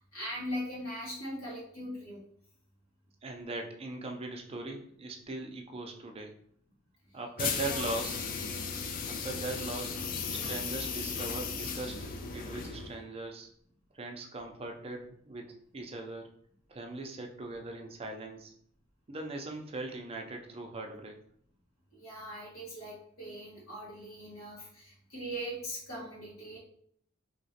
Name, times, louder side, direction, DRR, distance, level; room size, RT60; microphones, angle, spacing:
voice 1, 0.0-2.2 7.6-7.9 21.9-26.6, equal, 85° left, -6 dB, 1.5 m, -40 dB
voice 2, 3.2-6.4 7.1-8.2 9.1-10.0 10.3-13.5 13.9-15.5 15.7-16.2 16.7-18.5 19.1-21.2, right 2 dB, 25° right, 3 dB, 0.4 m, -40 dB
sound 1, 7.4-13.0, left 5 dB, 40° left, 0.4 m, -36 dB
3.0 x 2.8 x 2.8 m, 0.63 s
head